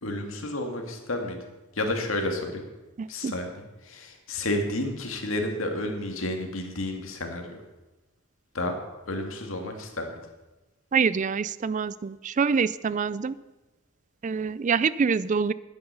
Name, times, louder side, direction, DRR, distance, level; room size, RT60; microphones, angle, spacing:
voice 1, 0.0-1.4 1.7-2.6 3.1-7.6 8.5-8.8 9.1-10.1, left 1 dB, 75° left, 4 dB, 2.2 m, -31 dB
voice 2, 3.0-3.3 10.9-13.3 14.2-15.5, right 5 dB, 35° right, 18 dB, 0.4 m, -25 dB
11.5 x 9.8 x 6.9 m, 1.1 s
head